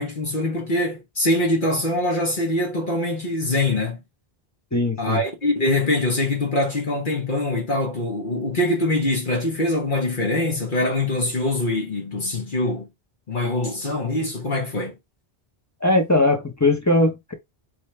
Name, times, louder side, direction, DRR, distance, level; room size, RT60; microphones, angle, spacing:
voice 1, 0.0-4.0 5.0-12.9 13.3-14.9, left 2 dB, 55° left, 1.3 m, -23 dB
voice 2, 4.7-5.2 15.8-17.3, left 2 dB, 20° left, 0.8 m, -20 dB
4.4 x 3.2 x 3.2 m
omnidirectional pair, 1.0 m